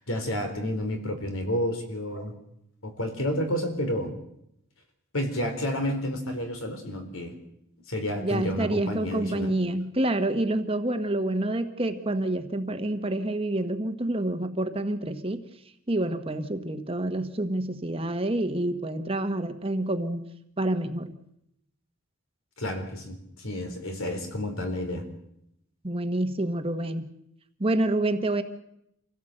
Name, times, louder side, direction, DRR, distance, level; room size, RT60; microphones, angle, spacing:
voice 1, 0.0-2.3 2.8-4.1 5.1-7.3 7.9-9.5 22.6-25.0, left 1 dB, 70° left, 5 dB, 4.2 m, -30 dB
voice 2, 8.2-15.4 15.9-20.3 20.6-21.1 25.8-27.1 27.6-28.4, right 1 dB, 25° right, 8 dB, 1.3 m, -28 dB
26.0 x 16.5 x 8.0 m, 0.80 s
head